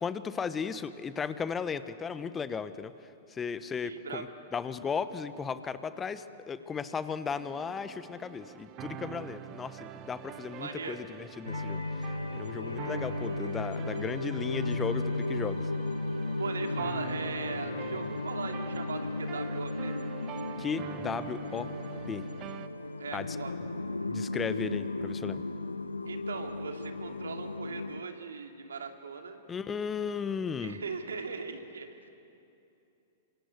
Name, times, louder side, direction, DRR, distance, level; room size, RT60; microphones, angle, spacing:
voice 1, 0.0-2.9 3.3-4.3 4.5-15.7 20.6-21.7 22.1-22.2 23.1-23.3 24.1-25.4 29.5-30.8, left 6 dB, 20° left, 13 dB, 1.1 m, -35 dB
voice 2, 3.8-4.2 10.6-11.0 16.4-20.0 23.0-23.5 26.1-29.4 30.6-32.1, right 5 dB, 75° right, 4 dB, 2.5 m, -39 dB
sound 1, 7.3-22.7, right 10 dB, 35° right, 1.2 m, -45 dB
sound 2, 11.5-28.0, left 2 dB, 85° left, 0.8 m, -35 dB
28.5 x 25.5 x 8.3 m, 2.8 s
figure-of-eight pair, 105°, 0 cm